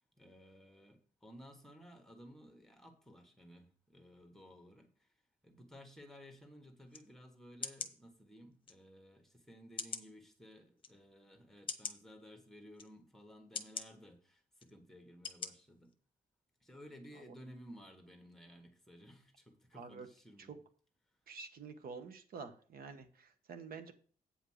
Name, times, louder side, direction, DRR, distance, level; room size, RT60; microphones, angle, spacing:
voice 1, 0.2-5.1 5.4-15.9 16.6-20.6, equal, ahead, 4 dB, 1.5 m, -56 dB
sound 1, 6.9-7.0 7.6-7.9 8.7-8.8 9.8-10.1 10.8-10.9 11.7-12.0 12.8-12.9 13.5-13.9 14.6-14.7 15.2-15.5 15.9-16.0, left 5 dB, 35° left, 1.0 m, -41 dB
voice 2, 19.8-20.1 20.5-20.6 21.3-23.9, right 5 dB, 90° right, 8 dB, 1.2 m, -48 dB
8.6 x 5.0 x 6.4 m, 0.43 s
wide cardioid pair, 160°, 15 cm